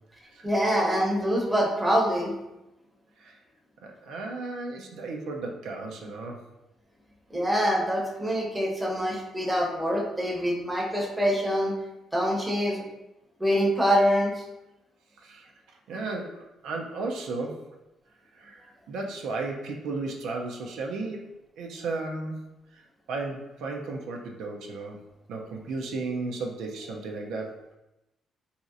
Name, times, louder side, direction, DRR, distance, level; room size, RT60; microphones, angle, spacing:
voice 1, 0.4-2.3 7.3-11.7 12.1-12.8 13.4-14.4, equal, 10° right, -2 dB, 0.7 m, -25 dB
voice 2, 3.8-6.4 15.2-15.5 15.9-17.7 18.4-21.3 21.6-22.3 22.7-22.8 23.1-25.0 25.3-27.6, right 3 dB, 85° right, 1 dB, 0.4 m, -34 dB
3.0 x 2.8 x 2.4 m, 0.93 s
cardioid pair, 90°, 0 cm